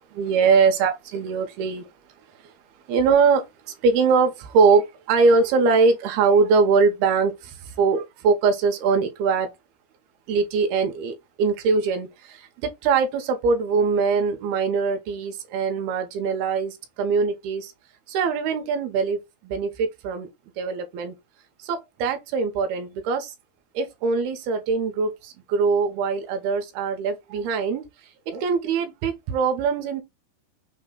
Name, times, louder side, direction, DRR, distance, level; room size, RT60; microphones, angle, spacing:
voice 1, 0.1-1.9 2.4-2.5 2.9-9.5 10.3-17.7 18.1-20.3 20.6-21.1 21.6-23.3 23.7-27.8 28.3-30.0, right 5 dB, 80° right, 2.7 m, -22 dB
6.3 x 2.1 x 3.7 m
omnidirectional pair, 4.6 m